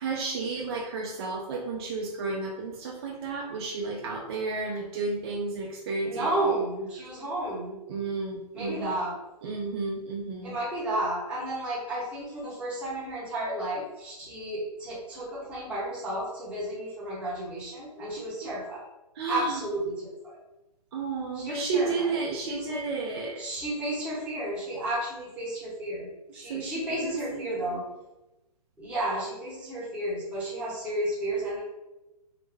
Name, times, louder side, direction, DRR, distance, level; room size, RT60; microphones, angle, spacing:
voice 1, 0.0-6.3 7.9-9.0 9.4-10.6 18.2-18.6 19.2-19.6 20.9-23.4 26.3-27.8, right 4 dB, 40° right, -1 dB, 0.5 m, -32 dB
voice 2, 6.0-7.8 8.5-9.2 10.4-18.8 19.3-20.0 20.2-20.4 21.3-22.1 22.5-22.8 23.4-26.1 26.3-27.8 28.8-31.6, right 1 dB, 5° right, -9 dB, 0.8 m, -32 dB
3.6 x 2.1 x 3.3 m, 0.98 s
hypercardioid pair, 155°, 20 cm